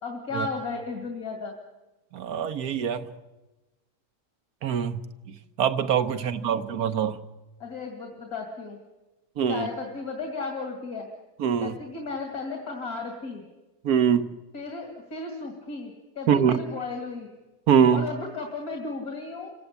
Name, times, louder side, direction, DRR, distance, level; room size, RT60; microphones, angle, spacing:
voice 1, 0.0-1.6 6.1-6.3 7.6-8.8 9.5-11.1 11.6-13.4 14.5-17.3 17.9-19.5, left 3 dB, 80° left, 2 dB, 3.0 m, -34 dB
voice 2, 2.1-3.0 4.6-5.0 5.3-7.2 9.4-9.7 11.4-11.8 13.8-14.3 16.3-16.6 17.7-18.1, right 8 dB, 85° right, 10 dB, 1.6 m, -23 dB
28.0 x 17.0 x 8.4 m, 1.1 s
omnidirectional pair, 1.6 m